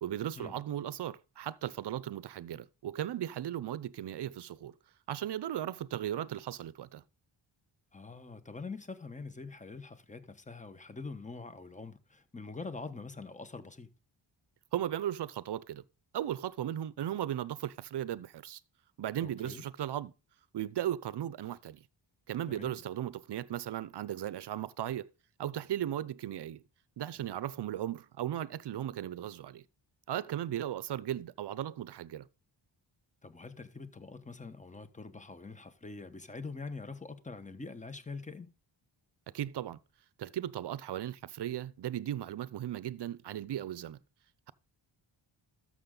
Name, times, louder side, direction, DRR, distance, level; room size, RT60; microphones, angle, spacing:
voice 1, 0.0-4.7 5.1-7.0 14.7-15.8 16.1-18.6 19.0-20.1 20.5-21.8 22.3-25.1 25.4-26.6 27.0-29.6 30.1-32.3 39.3-39.8 40.2-44.0, right 11 dB, 60° right, 0.7 m, -36 dB
voice 2, 7.9-13.9 19.2-19.6 22.5-22.8 33.2-38.5, left 4 dB, 15° left, 1.1 m, -44 dB
13.0 x 6.3 x 3.8 m
cardioid pair, 85°, 47 cm